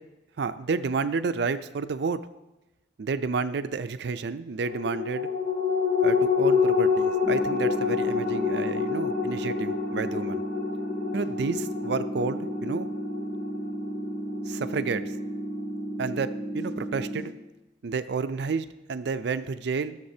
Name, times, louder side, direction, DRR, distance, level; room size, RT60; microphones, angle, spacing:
voice 1, 0.4-2.2 3.0-5.3 6.0-10.4 11.1-12.9 14.5-15.0 16.0-17.3 17.8-20.0, right 4 dB, 65° right, 11 dB, 0.4 m, -30 dB
sound 1, 4.6-15.5 15.8-15.9, left 6 dB, 50° left, 0.9 m, -28 dB
sound 2, 7.2-17.2, right 1 dB, 15° right, 1.3 m, -34 dB
16.0 x 6.6 x 2.8 m, 1.0 s
head